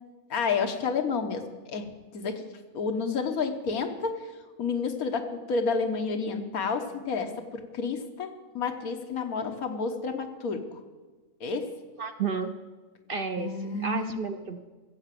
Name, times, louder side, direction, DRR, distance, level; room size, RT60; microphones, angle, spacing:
voice 1, 0.3-2.4 2.7-4.3 4.6-10.8 11.4-11.7 13.4-14.1, left 5 dB, 90° left, 5 dB, 1.6 m, -30 dB
voice 2, 12.0-12.5 13.1-14.6, right 5 dB, 50° right, 7 dB, 0.7 m, -32 dB
15.5 x 7.8 x 7.6 m, 1.3 s
omnidirectional pair, 1.5 m